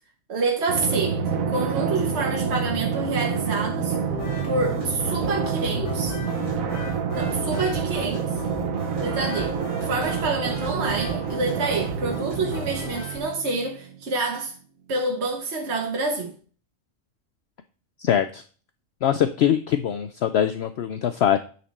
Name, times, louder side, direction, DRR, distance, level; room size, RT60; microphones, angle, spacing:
voice 1, 0.3-1.2 1.5-3.9 4.4-6.2 7.1-8.3 9.0-9.6 9.8-14.5 14.9-16.3, right 3 dB, 55° right, 1.4 m, -27 dB
Drum, 0.7-13.8, right 6 dB, 90° right, 1.4 m, -28 dB
sound 1, 4.1-13.2, left 1 dB, 35° left, 3.4 m, -37 dB
voice 2, 18.0-18.4 19.0-21.4, left 9 dB, 65° left, 0.7 m, -22 dB
8.9 x 4.4 x 4.0 m
omnidirectional pair, 1.4 m